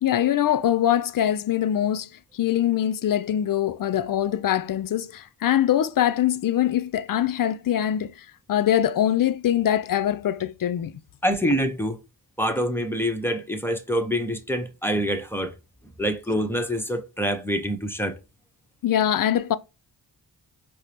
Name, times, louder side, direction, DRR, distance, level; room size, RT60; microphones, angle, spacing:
voice 1, 0.0-10.9 18.8-19.6, left 11 dB, 50° left, 0.4 m, -23 dB
voice 2, 11.2-12.0 12.4-15.5 16.0-18.2, equal, 5° left, 0.8 m, -26 dB
4.7 x 2.0 x 2.8 m
cardioid pair, 45°, 44 cm